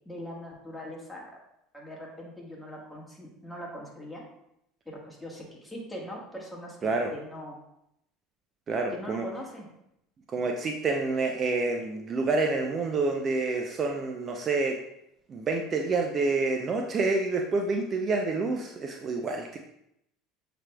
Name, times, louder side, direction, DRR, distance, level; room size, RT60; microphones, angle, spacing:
voice 1, 0.0-1.4 1.7-4.2 4.8-7.6 8.9-9.7, equal, 5° left, -3 dB, 1.5 m, -41 dB
voice 2, 6.8-7.1 8.7-9.3 10.3-14.8 15.3-19.6, right 3 dB, 35° right, 3 dB, 0.4 m, -28 dB
7.1 x 3.3 x 2.2 m, 0.80 s
hypercardioid pair, 90°, 0 cm